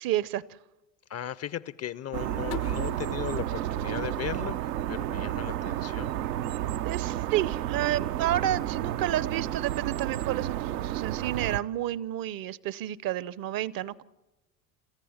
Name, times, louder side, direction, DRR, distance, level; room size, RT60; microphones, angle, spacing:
voice 1, 0.0-0.4 6.8-14.0, right 13 dB, 45° right, 21 dB, 0.7 m, -30 dB
voice 2, 1.1-6.2, left 10 dB, 35° left, 20 dB, 0.6 m, -37 dB
sound 1, 2.1-11.6, right 12 dB, 80° right, 0.7 m, -31 dB
sound 2, 2.5-5.3, left 12 dB, 70° left, 1.0 m, -44 dB
27.5 x 14.5 x 7.1 m, 1.1 s
hypercardioid pair, 70°, 47 cm